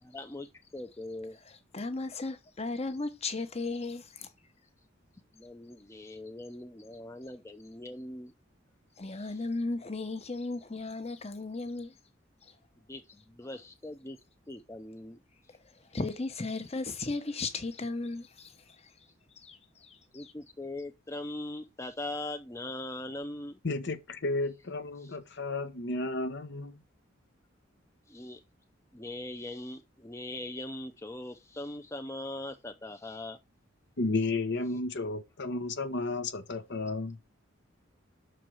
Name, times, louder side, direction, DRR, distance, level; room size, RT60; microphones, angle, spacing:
voice 1, 0.0-1.4 5.3-8.3 9.2-9.5 12.9-14.2 14.5-15.2 20.1-23.6 25.0-25.2 28.1-28.4 28.9-33.4, left 1 dB, 15° left, 0.6 m, -41 dB
voice 2, 1.7-4.3 9.0-11.9 15.9-18.5 19.4-20.3, left 3 dB, 35° left, 1.0 m, -35 dB
voice 3, 23.6-26.8 34.0-37.2, left 2 dB, 65° left, 1.0 m, -33 dB
6.3 x 4.5 x 6.2 m
head